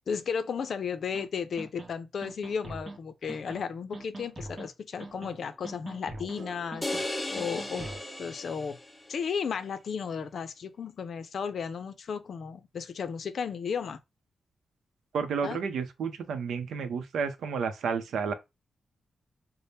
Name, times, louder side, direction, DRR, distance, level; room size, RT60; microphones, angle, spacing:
voice 1, 0.1-6.9 7.3-7.9 8.2-8.8 9.1-14.0 15.4-15.6, left 6 dB, 70° left, 0.5 m, -34 dB
sound 1, 1.1-1.3 1.6-1.9 2.2-3.0 3.3-3.6 3.9-4.7 5.0-5.4 5.6-6.4 6.7-7.0 7.4-8.0, right 2 dB, 45° right, 0.8 m, -42 dB
sound 2, 5.1-9.6, right 2 dB, 60° right, 1.0 m, -52 dB
sound 3, 6.8-9.2, left 2 dB, 15° left, 0.5 m, -36 dB
voice 2, 15.1-18.3, right 6 dB, 90° right, 0.6 m, -31 dB
4.1 x 2.1 x 3.3 m
cardioid pair, 80°, 0 cm